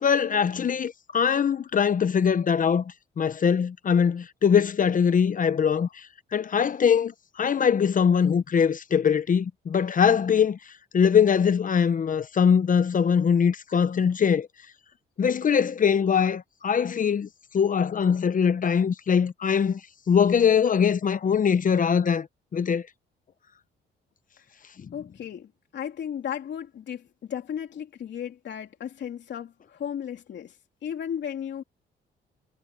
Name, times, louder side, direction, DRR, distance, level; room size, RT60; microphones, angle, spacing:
voice 1, 0.0-6.1 6.3-10.6 10.9-14.5 15.2-17.3 17.5-19.8 20.1-22.3 22.5-22.8, left 7 dB, 40° left, 0.9 m, -22 dB
voice 2, 24.9-30.6 30.8-31.6, left 9 dB, 65° left, 3.5 m, -35 dB
cardioid pair, 90°, 20 cm